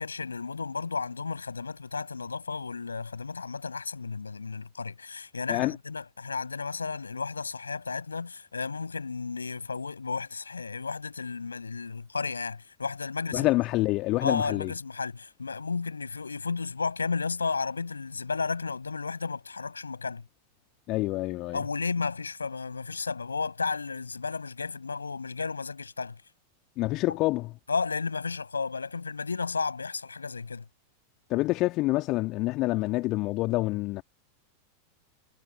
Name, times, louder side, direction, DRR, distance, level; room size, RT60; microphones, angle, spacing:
voice 1, 0.0-13.5 14.2-20.2 21.5-26.2 27.1-27.2 27.7-30.7, left 4 dB, 75° left, 5.8 m, -33 dB
voice 2, 13.3-14.7 20.9-21.6 26.8-27.5 31.3-34.0, left 20 dB, 40° left, 2.1 m, -27 dB
figure-of-eight pair, 90°, 0 cm